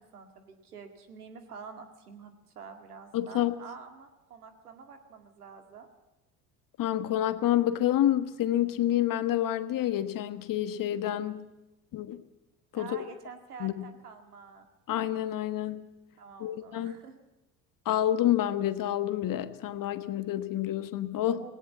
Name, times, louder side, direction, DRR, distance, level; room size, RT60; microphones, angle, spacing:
voice 1, 0.0-5.9 12.7-14.7 16.2-17.2 21.4-21.5, right 5 dB, 90° right, 6 dB, 2.1 m, -47 dB
voice 2, 3.1-3.5 6.8-11.5 11.9-12.2 12.7-13.0 13.6-13.9 14.9-15.9 16.4-17.0 17.8-21.4, left 12 dB, 45° left, 12 dB, 1.4 m, -28 dB
18.0 x 17.5 x 8.4 m, 0.96 s
hypercardioid pair, 70°, 44 cm